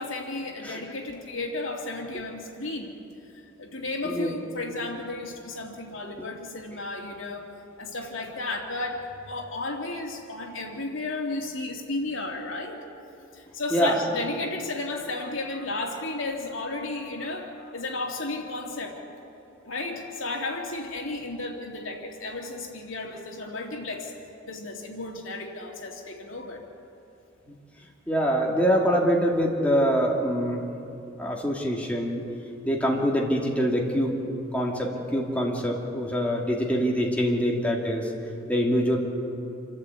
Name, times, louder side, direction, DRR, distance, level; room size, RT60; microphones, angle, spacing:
voice 1, 0.0-2.9 3.6-7.5 7.8-12.8 13.3-19.0 19.6-24.1 24.4-26.6, left 2 dB, 85° left, 1 dB, 2.6 m, -33 dB
voice 2, 4.0-4.4 13.7-14.0 27.5-27.6 28.1-30.6 31.2-32.2 32.7-34.2 34.5-38.1 38.5-39.0, equal, 5° left, -2 dB, 2.4 m, -24 dB
27.0 x 13.0 x 8.4 m, 2.8 s
head